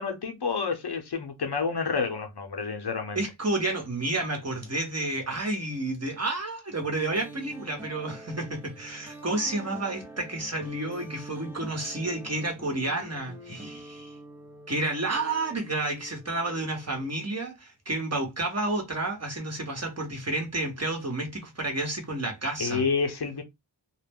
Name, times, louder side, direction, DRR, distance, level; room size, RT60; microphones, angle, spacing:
voice 1, 0.0-3.2 22.6-23.4, left 5 dB, 60° left, 0.7 m, -29 dB
voice 2, 3.1-14.1 14.7-22.8, right 2 dB, 35° right, 1.0 m, -30 dB
sound 1, 6.8-17.4, right 2 dB, 5° right, 0.8 m, -46 dB
2.2 x 2.1 x 3.5 m
wide cardioid pair, 45°, 46 cm